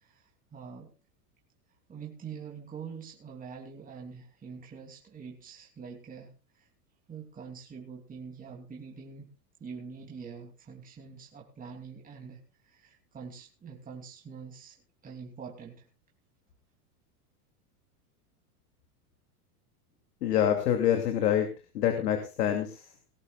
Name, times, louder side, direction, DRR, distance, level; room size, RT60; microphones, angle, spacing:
voice 1, 0.5-0.9 1.9-6.7 7.1-9.3 9.6-12.4 12.7-14.8 15.0-15.9, right 6 dB, 20° right, 0 dB, 2.9 m, -45 dB
voice 2, 20.2-21.5 21.7-22.7, left 10 dB, 90° left, 5 dB, 2.8 m, -26 dB
19.5 x 16.0 x 2.4 m, 0.32 s
supercardioid pair, 140°, 46 cm